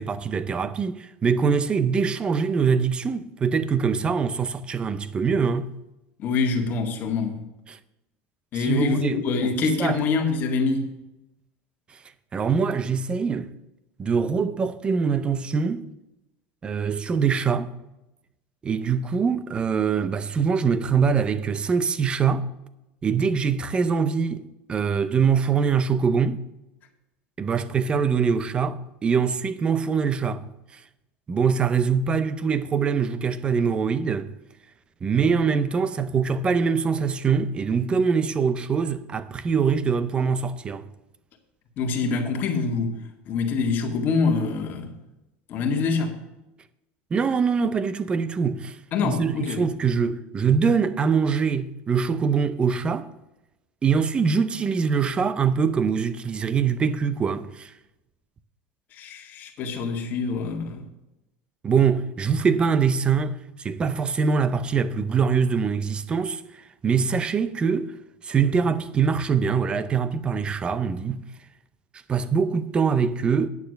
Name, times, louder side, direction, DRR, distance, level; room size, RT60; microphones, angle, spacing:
voice 1, 0.0-5.7 7.7-7.8 8.6-10.0 12.3-13.5 14.0-15.8 16.6-17.7 18.6-22.5 23.0-26.4 27.4-30.5 31.3-34.3 35.0-40.9 47.1-48.8 49.0-53.1 53.8-57.7 61.6-66.4 66.8-67.9 68.2-71.2 72.1-73.5, right 6 dB, 20° right, 0.6 m, -23 dB
voice 2, 6.2-7.4 8.5-10.9 41.8-43.0 43.3-44.9 45.5-46.1 48.9-49.7 58.9-60.8, left 4 dB, 40° left, 1.9 m, -25 dB
9.6 x 6.7 x 6.5 m
cardioid pair, 150°, 5 cm